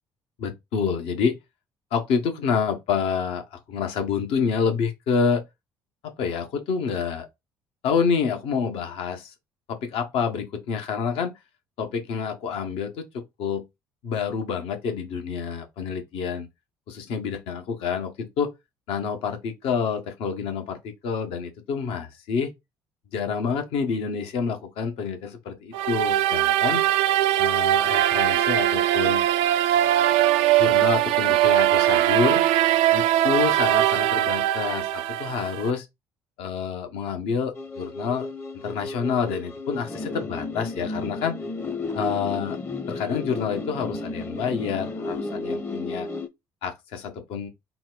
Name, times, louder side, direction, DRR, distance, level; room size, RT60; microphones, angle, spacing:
voice 1, 0.4-1.4 1.9-5.4 6.2-7.3 7.8-9.3 9.7-11.3 11.8-13.6 14.0-16.5 16.9-18.5 18.9-22.5 23.1-26.8 27.4-29.3 30.6-32.4 32.9-35.9 36.4-38.3 38.5-41.4 41.9-42.6 42.9-46.1 46.6-47.5, left 6 dB, 60° left, 1.0 m, -28 dB
sound 1, 25.7-35.7, right 13 dB, 65° right, 0.4 m, -21 dB
sound 2, 37.5-46.3, left 3 dB, 25° left, 0.8 m, -33 dB
3.9 x 2.3 x 3.8 m
hypercardioid pair, 55°, 11 cm